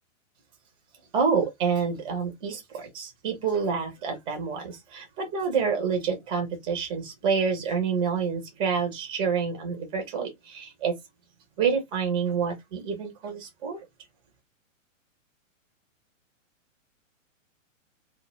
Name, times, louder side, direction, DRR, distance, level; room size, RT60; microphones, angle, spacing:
voice 1, 1.1-10.9 11.6-13.8, right 6 dB, 15° right, 0.4 m, -28 dB
2.1 x 2.0 x 2.9 m
hypercardioid pair, 135°, 39 cm